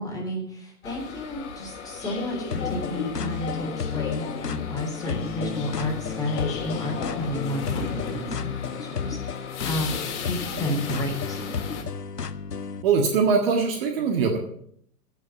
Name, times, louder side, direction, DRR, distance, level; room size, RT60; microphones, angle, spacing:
voice 1, 0.0-10.0 10.3-11.4, left 1 dB, 5° left, -1 dB, 3.6 m, -31 dB
sound 1, 0.8-11.8, left 5 dB, 45° left, 2.5 m, -35 dB
sound 2, 2.5-12.8, left 6 dB, 85° left, 0.7 m, -33 dB
voice 2, 12.8-14.4, right 5 dB, 40° right, 3 dB, 1.6 m, -22 dB
16.0 x 6.1 x 6.9 m, 0.66 s
figure-of-eight pair, 110°, 46 cm